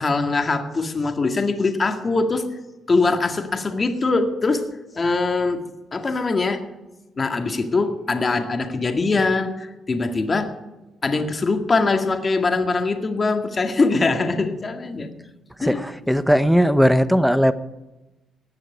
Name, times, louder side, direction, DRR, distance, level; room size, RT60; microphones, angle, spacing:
voice 1, 0.0-2.5 2.9-4.6 4.9-5.6 5.9-6.6 7.2-10.5 11.0-15.1 15.6-16.1, left 3 dB, 35° left, 6 dB, 1.9 m, -22 dB
voice 2, 15.6-17.5, equal, ahead, 13 dB, 0.9 m, -18 dB
18.5 x 6.4 x 9.6 m, 1.0 s
cardioid pair, 90°, 0 cm